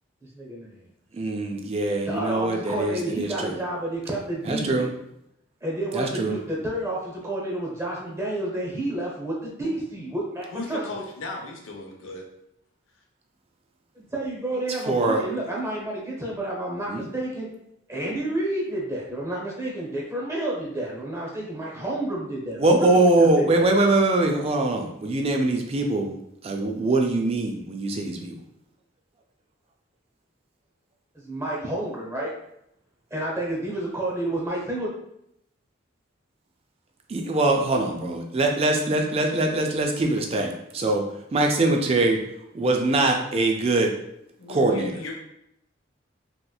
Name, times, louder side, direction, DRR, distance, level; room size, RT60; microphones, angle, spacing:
voice 1, 0.3-0.8 2.1-4.9 5.6-10.8 13.9-17.5 17.9-23.7 31.1-32.3 33.1-34.9, right 1 dB, 15° right, -4 dB, 0.7 m, -30 dB
voice 2, 1.1-3.6 4.4-4.9 5.9-6.4 14.9-15.2 16.9-17.1 22.6-26.2 26.4-28.4 37.1-41.0 41.3-42.2 42.6-43.9 44.5-45.1, right 2 dB, 30° right, 3 dB, 0.3 m, -23 dB
voice 3, 10.5-12.3 44.4-45.1, left 2 dB, 80° left, 1 dB, 0.7 m, -37 dB
3.1 x 2.9 x 2.3 m, 0.79 s
head